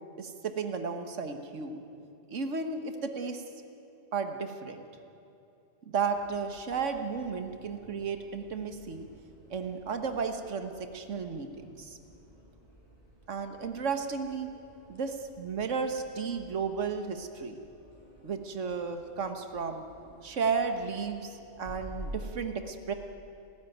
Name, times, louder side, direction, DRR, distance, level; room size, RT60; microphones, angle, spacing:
voice 1, 0.2-1.8 2.3-3.4 4.1-4.9 5.9-9.1 9.5-12.0 13.3-14.5 14.9-17.6 18.2-19.8 20.2-22.9, right 5 dB, 75° right, 7 dB, 1.7 m, -33 dB
sound 1, 6.1-22.4, equal, 35° right, 7.0 m, -51 dB
30.0 x 13.5 x 9.2 m, 2.7 s
omnidirectional pair, 1.3 m